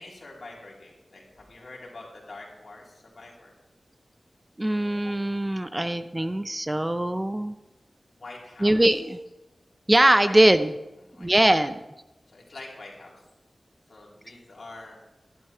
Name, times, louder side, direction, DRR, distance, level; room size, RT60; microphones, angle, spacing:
voice 1, 0.0-3.6 8.2-9.0 10.2-10.4 11.0-11.7 12.3-13.2 13.9-15.0, left 2 dB, 70° left, -3 dB, 3.6 m, -45 dB
voice 2, 4.6-7.6 8.6-9.2 9.9-10.7 11.2-11.8, right 1 dB, 20° right, 10 dB, 0.6 m, -21 dB
11.5 x 11.5 x 4.4 m, 0.96 s
cardioid pair, 50°, 0 cm